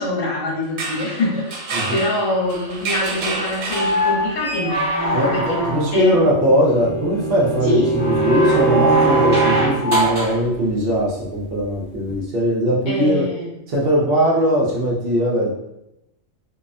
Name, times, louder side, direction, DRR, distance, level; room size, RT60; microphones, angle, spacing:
voice 1, 0.0-1.5 1.9-6.4 7.6-7.9 12.9-13.5, left 1 dB, 70° left, -3 dB, 1.1 m, -24 dB
sound 1, 0.6-4.5, right 3 dB, 85° right, 1.0 m, -29 dB
sound 2, 3.6-6.1 8.0-10.4 12.1-12.2, equal, 25° right, 0.8 m, -22 dB
voice 2, 5.7-13.2 13.7-15.5, equal, 55° right, -4 dB, 0.7 m, -20 dB
Bowed string instrument, 6.0-9.8, right 4 dB, 15° left, 0.6 m, -22 dB
2.6 x 2.1 x 2.5 m, 0.85 s
omnidirectional pair, 1.4 m